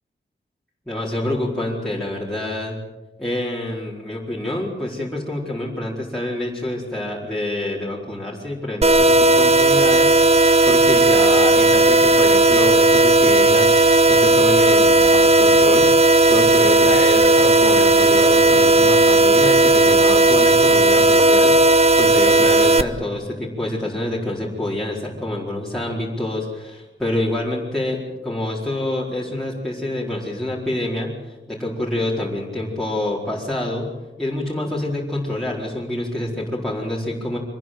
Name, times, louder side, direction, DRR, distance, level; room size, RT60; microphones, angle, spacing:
voice 1, 0.9-2.8 3.2-13.7 14.1-15.9 16.3-33.9 34.2-37.4, left 1 dB, ahead, -6 dB, 4.6 m, -27 dB
sound 1, 8.8-22.8, right 2 dB, 30° right, 1.1 m, -14 dB
25.5 x 20.0 x 7.8 m, 1.1 s
wide cardioid pair, 140°, 20 cm